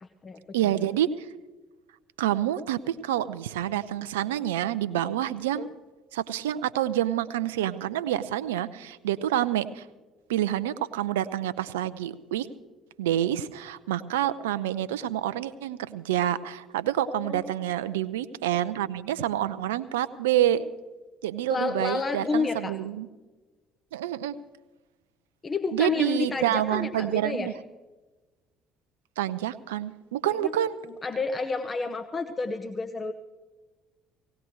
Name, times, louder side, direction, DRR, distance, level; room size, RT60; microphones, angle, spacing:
voice 1, 0.0-0.7 5.6-5.7 17.1-17.5 21.5-22.8 25.4-27.5 30.3-30.5 31.0-33.1, left 4 dB, 30° left, 7 dB, 0.8 m, -30 dB
voice 2, 0.5-1.3 2.2-5.7 6.1-9.8 10.3-12.5 13.0-20.6 21.2-23.1 23.9-24.3 25.7-27.5 29.2-30.8, right 12 dB, 75° right, 14 dB, 0.5 m, -28 dB
18.5 x 17.5 x 3.1 m, 1.2 s
figure-of-eight pair, 55°, 0 cm